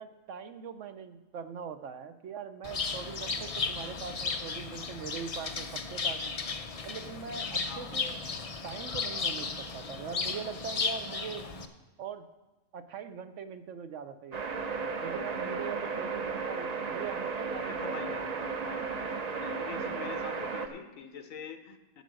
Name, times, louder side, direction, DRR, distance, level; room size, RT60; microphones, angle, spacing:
voice 1, 0.0-6.4 6.8-8.2 8.6-11.5 12.0-12.3 12.7-14.6 15.0-18.5, right 6 dB, 65° right, 10 dB, 0.9 m, -41 dB
Bird, 2.6-11.6, left 4 dB, 40° left, 0.5 m, -35 dB
voice 2, 7.7-8.0 17.6-18.2 18.6-18.9 19.3-22.0, left 8 dB, 70° left, 8 dB, 1.2 m, -45 dB
sound 1, 14.3-20.7, right 4 dB, 40° right, 0.6 m, -34 dB
9.2 x 8.2 x 6.3 m, 1.1 s
omnidirectional pair, 1.5 m